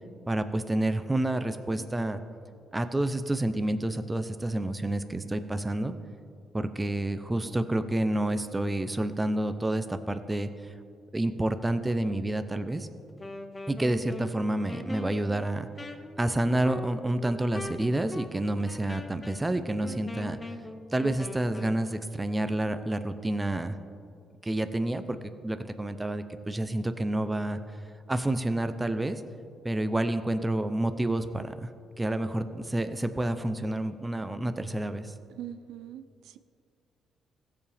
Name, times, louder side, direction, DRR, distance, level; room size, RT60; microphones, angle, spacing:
voice 1, 0.3-2.2 2.7-5.9 6.5-10.7 11.1-12.9 13.7-15.7 16.2-20.4 20.9-23.8 24.4-25.2 25.4-27.6 28.1-29.2 29.6-31.7 32.0-35.1, right 1 dB, 15° right, 10 dB, 0.6 m, -29 dB
Wind instrument woodwind instrument, 13.1-21.8, left 1 dB, 20° left, 0.7 m, -42 dB
voice 2, 35.3-36.4, right 10 dB, 85° right, 11 dB, 0.4 m, -42 dB
16.0 x 7.0 x 3.5 m, 2.3 s
cardioid pair, 90°, 0 cm